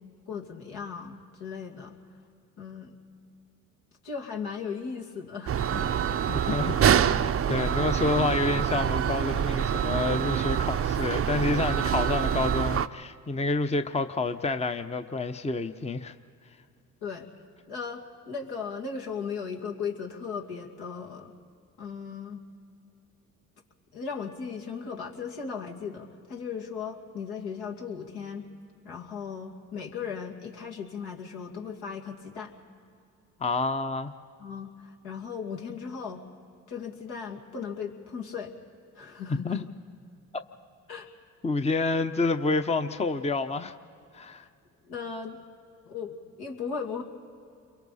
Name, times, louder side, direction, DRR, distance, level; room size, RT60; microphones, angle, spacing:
voice 1, 0.3-2.0 2.6-3.0 4.0-5.9 17.0-17.3 17.7-21.3 21.8-22.4 23.9-28.4 28.8-32.5 34.4-36.3 36.7-38.5 39.0-39.7 40.9-41.1 44.4-44.5 44.9-45.4 45.8-47.0, left 6 dB, 75° left, 0 dB, 2.5 m, -37 dB
sound 1, 5.5-12.9, right 9 dB, 35° right, 0.6 m, -26 dB
voice 2, 6.3-16.2 33.4-34.1 39.3-39.6 41.4-43.7 44.1-44.4, left 3 dB, 15° left, 9 dB, 0.8 m, -28 dB
29.5 x 23.0 x 4.2 m, 2.5 s
supercardioid pair, 60°, 39 cm